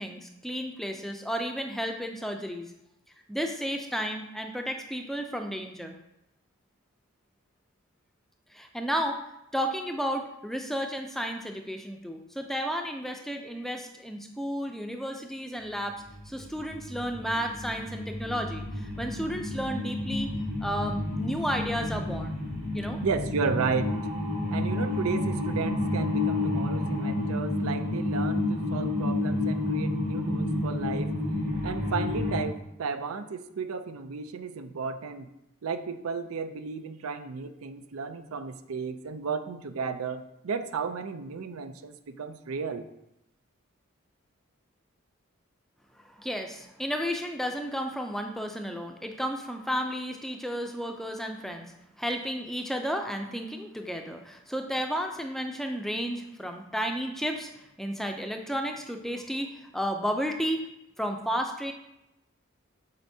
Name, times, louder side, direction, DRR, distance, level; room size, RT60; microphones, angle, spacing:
voice 1, 0.0-2.7 3.3-5.9 8.5-9.2 9.5-15.9 16.3-20.3 20.6-22.4 22.7-23.0 46.0-60.6 61.0-61.7, equal, ahead, 4 dB, 0.4 m, -32 dB
sound 1, 15.8-32.4, left 2 dB, 40° right, 1.7 m, -30 dB
voice 2, 23.0-24.0 24.5-31.1 31.6-35.3 35.6-42.9, right 5 dB, 85° right, 10 dB, 0.5 m, -33 dB
7.9 x 5.1 x 2.7 m, 0.87 s
head